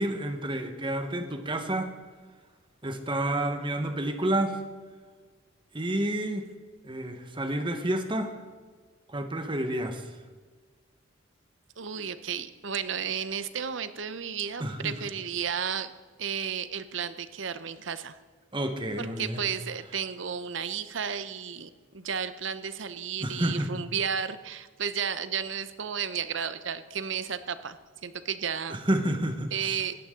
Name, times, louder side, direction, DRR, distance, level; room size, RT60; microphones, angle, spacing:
voice 1, 0.0-1.9 2.8-4.6 5.7-6.5 6.8-8.3 9.1-10.0 14.6-15.0 18.5-19.4 23.2-23.7 28.7-29.8, right 1 dB, 25° right, 1.3 m, -29 dB
voice 2, 11.8-15.9 16.2-18.1 19.0-27.8 28.0-28.8 29.5-29.9, right 7 dB, 65° right, 0.8 m, -33 dB
18.5 x 14.0 x 3.8 m
head